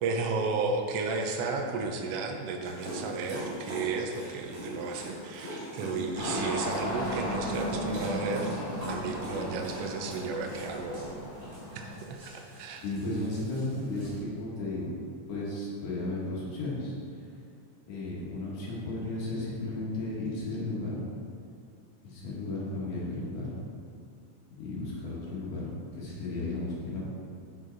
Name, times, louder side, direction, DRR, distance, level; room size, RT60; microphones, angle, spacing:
voice 1, 0.0-8.5 8.9-11.2 11.7-12.8, right 4 dB, 85° right, 3 dB, 1.3 m, -33 dB
Dog, 2.6-14.2, right 1 dB, 45° right, 2.2 m, -42 dB
sound 1, 6.1-11.9, equal, 35° left, 2.0 m, -35 dB
voice 2, 12.8-15.0 15.3-17.2 17.9-21.0 22.0-23.5 24.6-27.2, left 2 dB, 75° left, -6 dB, 2.8 m, -34 dB
7.7 x 5.6 x 3.9 m, 2.4 s
omnidirectional pair, 3.5 m